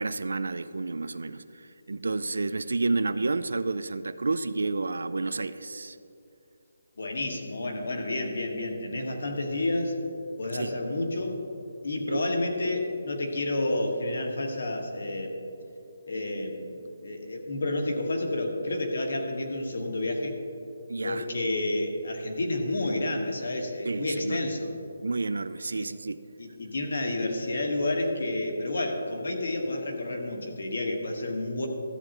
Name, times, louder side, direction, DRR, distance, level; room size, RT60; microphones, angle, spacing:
voice 1, 0.0-1.4 1.9-6.0 10.5-10.8 12.1-12.2 20.9-21.2 23.9-24.5 25.0-26.2, right 3 dB, 80° right, 13 dB, 0.4 m, -30 dB
voice 2, 7.0-9.9 10.4-11.4 11.8-15.4 16.1-20.4 21.0-24.7 25.7-25.9 26.4-31.7, left 2 dB, 55° left, 2 dB, 1.3 m, -30 dB
13.5 x 7.8 x 3.0 m, 2.7 s
hypercardioid pair, 180°, 0 cm